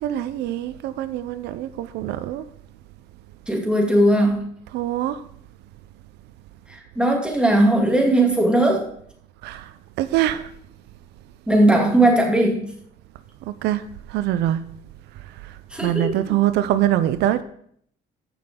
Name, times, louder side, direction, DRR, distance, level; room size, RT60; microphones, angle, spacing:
voice 1, 0.0-2.4 4.7-5.2 9.4-10.5 13.5-13.8 14.1-14.6 15.2-17.4, right 13 dB, 80° right, 0.6 m, -24 dB
voice 2, 3.5-4.4 6.7-8.9 11.5-12.7 15.7-16.4, right 1 dB, 5° right, 2.5 m, -18 dB
14.5 x 5.9 x 3.7 m
cardioid pair, 110°, 17 cm